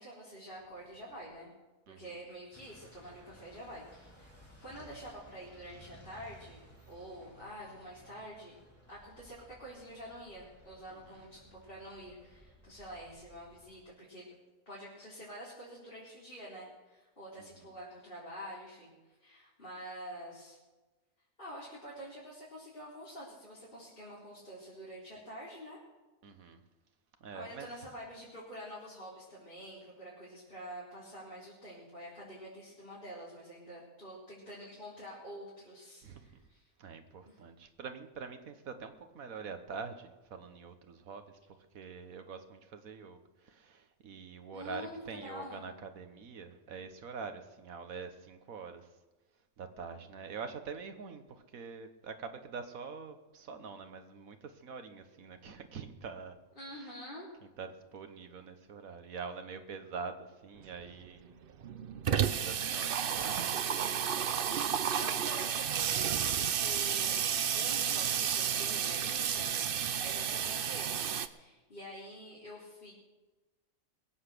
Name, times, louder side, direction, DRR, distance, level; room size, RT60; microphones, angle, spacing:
voice 1, 0.0-1.5 2.0-8.6 8.9-14.3 14.7-20.6 21.4-25.8 27.3-36.6 37.3-37.4 44.5-45.6 56.6-57.3 62.2-62.6 65.0-67.3 67.5-69.5 70.0-72.9, equal, 40° left, -8 dB, 4.1 m, -47 dB
sound 1, 2.5-13.8, equal, 10° right, 3.7 m, -58 dB
voice 2, 26.2-26.6 27.2-27.7 36.0-36.3 36.8-41.3 41.7-48.9 49.6-56.4 57.6-61.4 62.1-64.9, right 5 dB, 85° right, 8 dB, 1.6 m, -45 dB
Water tap faucet / Sink (filling or washing), 60.6-60.7 61.0-61.1 61.4-71.3, right 8 dB, 55° right, 0.7 m, -32 dB
21.5 x 8.0 x 6.8 m, 1.2 s
omnidirectional pair, 1.4 m